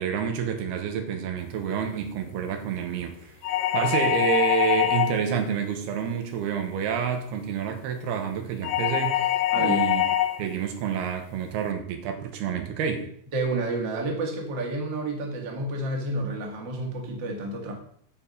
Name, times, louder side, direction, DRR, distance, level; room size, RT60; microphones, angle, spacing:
voice 1, 0.0-3.3 3.7-10.0 10.4-13.1, right 7 dB, 85° right, 5 dB, 3.2 m, -28 dB
sound 1, 3.4-5.4 8.6-10.4, left 12 dB, 85° left, 2.6 m, -24 dB
voice 2, 13.3-17.7, right 2 dB, 35° right, 1 dB, 2.1 m, -30 dB
9.5 x 7.1 x 5.4 m, 0.64 s
omnidirectional pair, 4.5 m